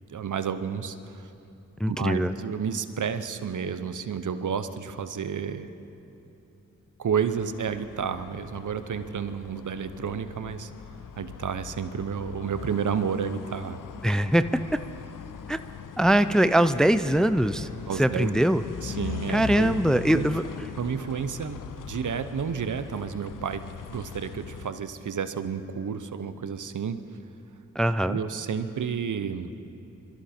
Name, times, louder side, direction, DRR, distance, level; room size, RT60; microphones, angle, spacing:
voice 1, 0.1-1.3 1.9-5.7 7.0-10.7 11.1-13.8 17.9-18.3 18.8-19.8 20.1-20.3 20.8-21.6 21.9-23.6 23.9-27.0 28.1-29.5, right 7 dB, 70° right, 11 dB, 0.8 m, -31 dB
voice 2, 1.8-2.3 14.0-14.4 15.5-15.6 16.0-17.7 18.0-18.6 19.3-20.4 27.8-28.2, right 1 dB, ahead, 12 dB, 0.5 m, -22 dB
sound 1, 7.3-24.7, left 8 dB, 75° left, 0.6 m, -41 dB
22.5 x 14.0 x 4.4 m, 2.7 s
cardioid pair, 45°, 32 cm